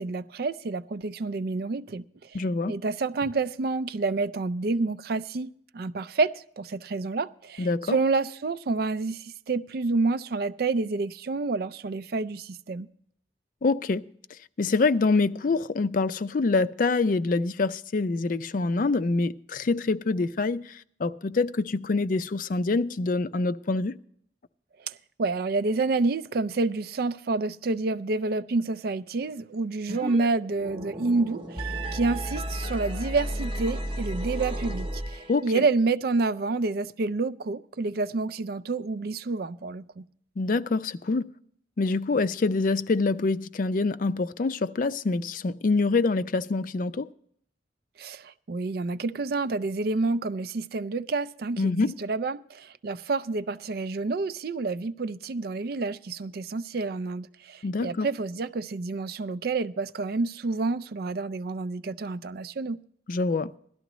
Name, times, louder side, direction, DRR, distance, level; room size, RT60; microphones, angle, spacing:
voice 1, 0.0-2.0 2.3-2.4 2.7-12.9 24.9-25.0 25.2-40.0 48.0-62.8, right 3 dB, 55° right, 0.4 m, -29 dB
voice 2, 2.3-2.8 7.6-8.0 13.6-14.0 14.6-24.0 35.3-35.7 40.4-41.3 41.8-47.1 51.6-52.0 57.6-58.1 63.1-63.5, left 3 dB, 45° left, 0.4 m, -25 dB
sound 1, 29.9-30.3 30.5-35.5, right 1 dB, 30° right, 0.8 m, -33 dB
17.0 x 12.5 x 3.0 m
head